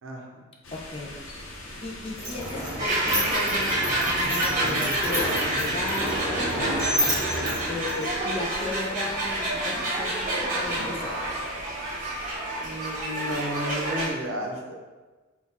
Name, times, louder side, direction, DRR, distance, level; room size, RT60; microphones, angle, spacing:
voice 1, 0.0-0.5 12.6-14.8, equal, 85° right, 0 dB, 0.6 m, -32 dB
sound 1, 0.6-12.4, left 1 dB, 80° left, 0.8 m, -44 dB
voice 2, 0.7-1.1 1.8-6.8 7.7-11.2, left 2 dB, 30° left, 0 dB, 0.4 m, -35 dB
sound 2, 2.2-8.4, right 1 dB, 15° right, 1.4 m, -30 dB
sound 3, 2.8-14.1, right 1 dB, 40° right, 0.9 m, -28 dB
3.9 x 2.3 x 4.1 m, 1.3 s
head